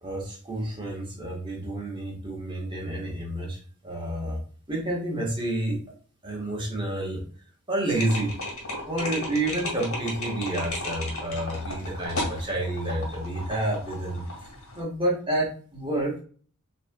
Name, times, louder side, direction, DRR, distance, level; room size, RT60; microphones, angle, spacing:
voice 1, 0.0-4.4 4.7-5.8 6.2-7.2 7.7-8.3 8.9-14.2 14.7-16.2, right 1 dB, 20° right, -1 dB, 1.4 m, -29 dB
sound 1, 7.9-14.8, left 1 dB, 70° left, 2.0 m, -34 dB
5.7 x 3.3 x 2.3 m, 0.43 s
head